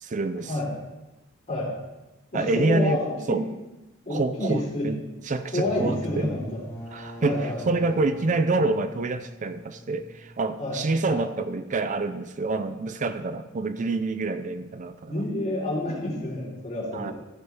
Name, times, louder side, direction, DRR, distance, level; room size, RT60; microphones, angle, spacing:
voice 1, 0.0-0.5 2.3-3.0 3.3-3.4 4.1-5.0 5.2-6.3 6.9-15.2 16.9-17.1, right 3 dB, 40° right, 10 dB, 0.5 m, -27 dB
voice 2, 2.3-3.4 4.1-4.9 5.5-6.6 7.2-7.8 10.6-10.8 11.1-11.3 15.1-17.1, left 1 dB, 35° left, -5 dB, 3.6 m, -29 dB
sound 1, 5.5-11.0, equal, 10° left, 2.2 m, -42 dB
14.5 x 5.6 x 4.4 m, 1.0 s
head